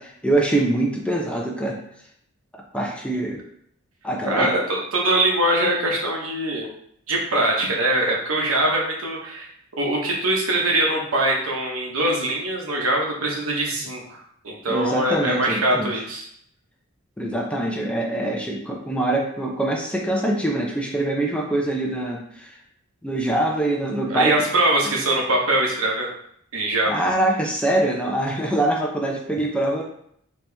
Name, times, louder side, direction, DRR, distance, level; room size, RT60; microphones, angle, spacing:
voice 1, 0.0-1.8 2.7-3.4 4.0-4.5 14.7-15.9 17.2-22.6 23.0-24.3 24.8-24.9 26.9-29.8, right 1 dB, 5° left, -1 dB, 0.6 m, -24 dB
voice 2, 4.2-6.7 7.1-9.5 9.8-16.3 24.1-26.1 26.5-26.9, right 1 dB, 85° right, -1 dB, 1.1 m, -22 dB
4.2 x 2.9 x 3.4 m, 0.68 s
head